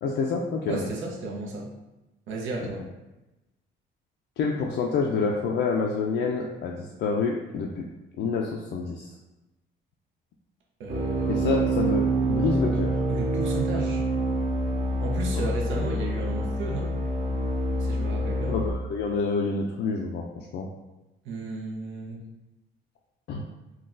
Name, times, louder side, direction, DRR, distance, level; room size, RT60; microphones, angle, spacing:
voice 1, 0.0-0.9 4.4-7.9 8.2-9.1 11.3-13.1 18.5-20.7 23.3-23.4, left 4 dB, 65° left, -1 dB, 0.4 m, -28 dB
voice 2, 0.7-1.7 2.3-2.9 10.8-11.7 13.1-14.0 15.0-16.9 17.8-18.5 21.2-22.2, right 2 dB, 75° right, -1 dB, 0.8 m, -33 dB
sound 1, 10.9-18.7, right 1 dB, 35° right, 0.6 m, -26 dB
3.8 x 2.3 x 2.5 m, 1.0 s
cardioid pair, 105°, 20 cm